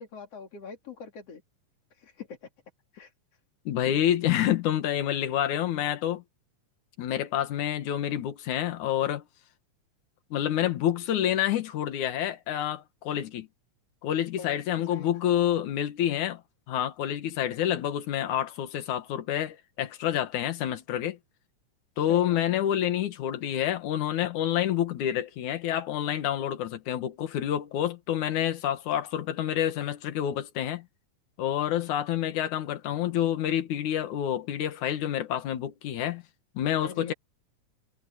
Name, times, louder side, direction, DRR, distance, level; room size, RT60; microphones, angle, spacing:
voice 1, 0.0-1.4 1.9-2.5 2.9-3.1 14.4-14.6 14.9-15.1 22.0-22.4 36.8-37.1, left 5 dB, 55° left, 3.6 m, -43 dB
voice 2, 3.7-6.2 7.0-9.2 10.3-13.5 14.0-16.4 16.7-21.2 22.0-30.9 31.4-36.2 36.5-37.1, left 11 dB, 80° left, 2.9 m, -28 dB
omnidirectional pair, 3.4 m